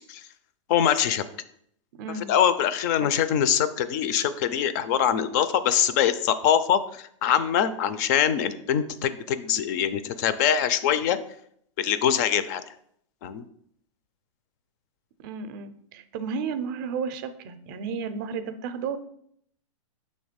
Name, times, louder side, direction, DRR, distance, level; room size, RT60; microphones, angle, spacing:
voice 1, 0.7-1.2 2.3-11.2 11.8-12.6 13.2-13.4, left 9 dB, 35° left, 13 dB, 0.4 m, -23 dB
voice 2, 1.9-2.3 3.0-3.2 15.2-19.0, right 5 dB, 35° right, 10 dB, 0.5 m, -33 dB
6.4 x 3.1 x 5.0 m, 0.69 s
hypercardioid pair, 150°, 17 cm